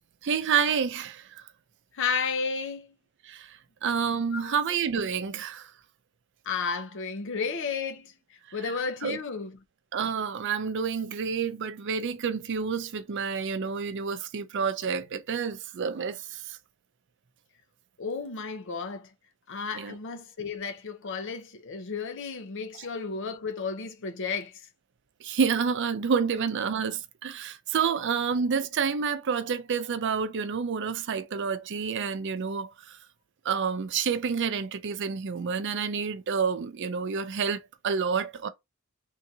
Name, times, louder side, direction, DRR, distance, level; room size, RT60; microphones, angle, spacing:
voice 1, 0.2-1.4 3.2-5.7 9.0-9.2 9.9-16.6 19.7-19.9 25.2-33.0 33.4-38.5, right 6 dB, 55° right, 0.4 m, -29 dB
voice 2, 1.9-2.9 4.3-4.5 6.4-8.1 8.5-9.6 18.0-19.1 19.5-24.7, left 5 dB, 60° left, 0.6 m, -33 dB
3.6 x 2.8 x 2.7 m
head